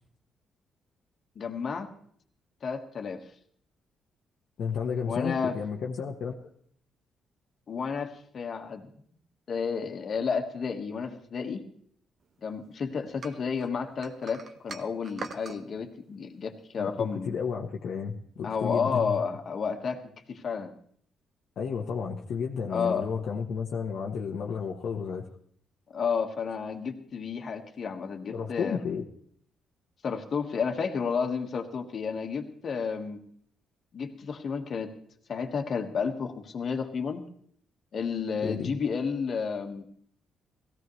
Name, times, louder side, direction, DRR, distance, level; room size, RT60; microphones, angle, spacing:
voice 1, 1.3-1.9 2.6-3.3 5.0-5.5 7.7-8.9 9.5-11.6 12.4-17.4 18.4-20.7 22.7-23.0 25.9-28.8 30.0-33.2 33.9-35.0 35.3-37.3 37.9-39.8, left 5 dB, 50° left, 5 dB, 1.5 m, -31 dB
voice 2, 4.6-6.5 16.8-19.2 21.6-25.3 28.3-29.0 38.4-38.7, left 6 dB, 65° left, 0 dB, 1.0 m, -32 dB
sound 1, 13.2-15.6, right 4 dB, 50° right, 1.0 m, -42 dB
17.5 x 15.0 x 3.2 m, 0.62 s
cardioid pair, 90°, 0 cm